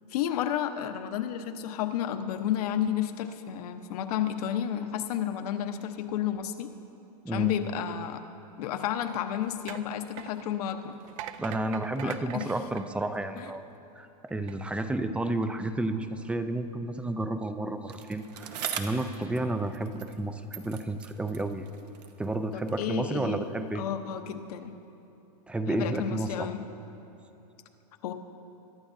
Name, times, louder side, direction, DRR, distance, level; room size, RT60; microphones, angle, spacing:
voice 1, 0.1-6.7 7.3-8.2 8.6-10.9 12.0-12.5 13.4-13.5 22.5-24.7 25.7-26.6 28.0-28.1, left 10 dB, 65° left, 7 dB, 1.0 m, -31 dB
sound 1, 8.8-13.7 14.3-14.5, right 11 dB, 55° right, 0.6 m, -44 dB
voice 2, 11.4-13.6 14.0-18.5 18.8-21.7 22.2-23.8 25.5-26.5, right 2 dB, 5° right, 9 dB, 0.4 m, -31 dB
Bicycle, 17.9-20.3 20.5-22.9 23.7-23.8, right 8 dB, 80° right, 1.1 m, -41 dB
23.0 x 11.5 x 2.7 m, 3.0 s
supercardioid pair, 135°, 21 cm